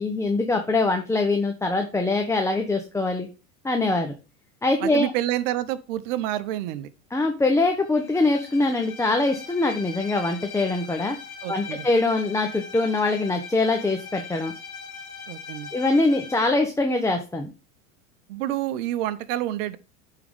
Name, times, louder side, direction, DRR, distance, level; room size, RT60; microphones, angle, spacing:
voice 1, 0.0-3.3 3.6-4.1 4.6-5.1 7.1-11.2 11.5-14.5 15.7-17.5, left 2 dB, 5° left, 0.8 m, -23 dB
voice 2, 4.8-6.9 11.4-11.9 15.3-15.7 18.3-19.8, right 13 dB, 65° right, 0.9 m, -28 dB
Bowed string instrument, 7.9-16.6, left 5 dB, 90° left, 1.6 m, -40 dB
9.4 x 3.8 x 3.6 m
hypercardioid pair, 95°, 42 cm